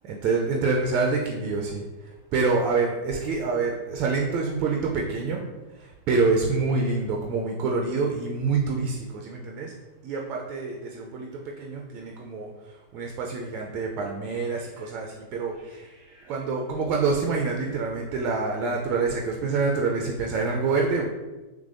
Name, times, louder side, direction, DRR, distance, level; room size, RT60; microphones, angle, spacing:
voice 1, 0.0-5.4 5.7-9.7 10.0-21.1, right 4 dB, 40° right, 0 dB, 0.4 m, -27 dB
3.3 x 3.2 x 2.5 m, 1.1 s
figure-of-eight pair, 90°, 0 cm